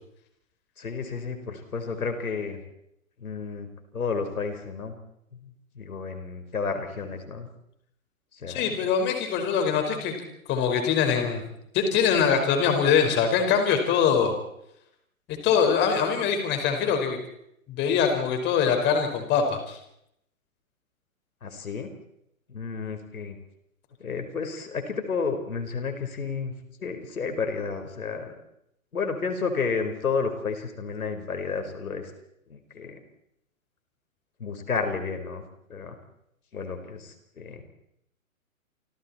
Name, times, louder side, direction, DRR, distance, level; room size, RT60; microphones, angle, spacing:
voice 1, 0.8-2.6 3.2-5.0 5.7-7.5 8.3-8.7 21.4-21.9 22.5-23.4 24.0-26.5 26.8-28.3 28.9-32.1 32.5-33.0 34.4-35.4 35.7-36.0 36.5-37.6, left 5 dB, 75° left, 6 dB, 4.8 m, -31 dB
voice 2, 8.5-10.2 10.5-11.5 11.7-14.3 15.4-17.2 17.7-19.8, left 7 dB, 25° left, 5 dB, 5.1 m, -23 dB
29.0 x 26.5 x 4.4 m, 0.76 s
hypercardioid pair, 130°, 43 cm